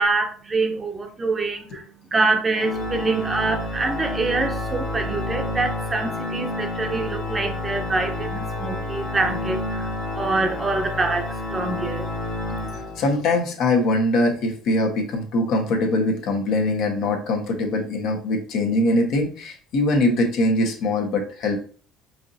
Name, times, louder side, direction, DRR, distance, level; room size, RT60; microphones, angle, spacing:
voice 1, 0.0-12.1, right 3 dB, 25° right, 0.6 m, -25 dB
Organ, 2.5-13.4, left 2 dB, 45° left, 1.5 m, -29 dB
voice 2, 13.0-21.7, left 2 dB, 65° left, 1.1 m, -22 dB
4.6 x 2.8 x 2.7 m
hypercardioid pair, 75°, 0 cm